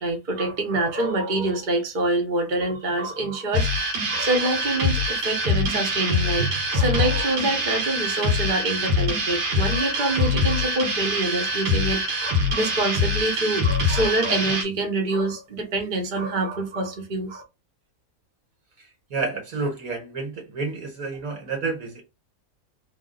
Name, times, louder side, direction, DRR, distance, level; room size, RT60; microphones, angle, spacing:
voice 1, 0.0-17.4, right 2 dB, 35° right, 0.9 m, -26 dB
sound 1, 3.5-14.6, left 2 dB, 80° right, 1.7 m, -24 dB
voice 2, 19.1-22.0, right 4 dB, 60° right, 1.4 m, -29 dB
3.5 x 2.3 x 3.7 m
omnidirectional pair, 1.8 m